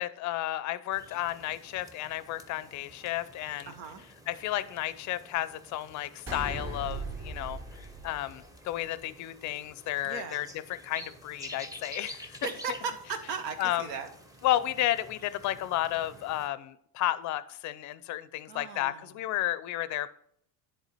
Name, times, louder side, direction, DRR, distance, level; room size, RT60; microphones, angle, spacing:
voice 1, 0.0-3.7 4.3-7.6 8.0-10.5 10.8-12.4 13.6-13.8 14.4-20.1, left 14 dB, 40° left, 15 dB, 0.4 m, -32 dB
sound 1, 0.9-16.5, equal, 10° right, 0.7 m, -50 dB
voice 2, 3.7-4.0 10.0-10.5 12.4-14.1 18.5-19.2, right 5 dB, 80° right, 8 dB, 1.2 m, -37 dB
sound 2, 6.3-8.8, right 2 dB, 30° right, 2.7 m, -38 dB
10.5 x 3.6 x 4.1 m, 0.67 s
supercardioid pair, 100°, 48 cm